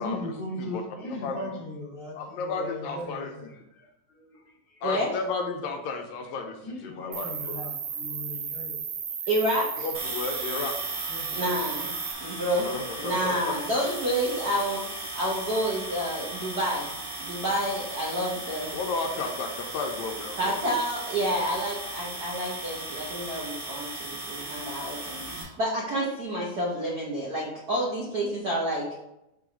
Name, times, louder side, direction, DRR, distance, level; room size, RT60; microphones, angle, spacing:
voice 1, 0.0-4.8 6.2-6.3 6.6-8.8 11.1-11.3 15.1-15.2 15.8-15.9 17.3-17.4, left 1 dB, 30° left, -5 dB, 1.1 m, -39 dB
voice 2, 1.1-1.5 2.1-3.3 4.8-6.6 6.8-7.3 9.8-10.7 12.6-13.5 18.7-20.6, left 4 dB, 80° left, 4 dB, 1.9 m, -33 dB
Cricket, 7.1-12.1, right 7 dB, 65° right, 1.8 m, -34 dB
voice 3, 9.3-9.9 11.3-11.9 12.2-12.7 13.0-14.8 15.1-16.9 17.2-18.7 20.4-28.9, right 1 dB, 80° right, -4 dB, 0.8 m, -29 dB
sound 1, 9.9-25.4, right 2 dB, 30° right, 1.6 m, -37 dB
4.7 x 4.1 x 5.0 m, 0.87 s
omnidirectional pair, 3.4 m